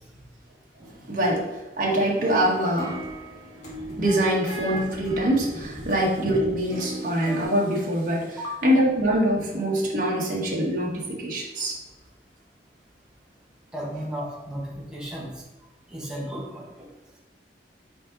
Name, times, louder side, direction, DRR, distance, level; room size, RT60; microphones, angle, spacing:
voice 1, 0.8-3.1 4.0-11.8, right 1 dB, 50° right, -3 dB, 1.8 m, -24 dB
sound 1, 2.2-7.4, right 1 dB, 40° left, 1.8 m, -37 dB
voice 2, 13.7-15.3 15.9-16.9, equal, 5° right, -5 dB, 1.4 m, -34 dB
5.5 x 5.3 x 4.1 m, 1.1 s
head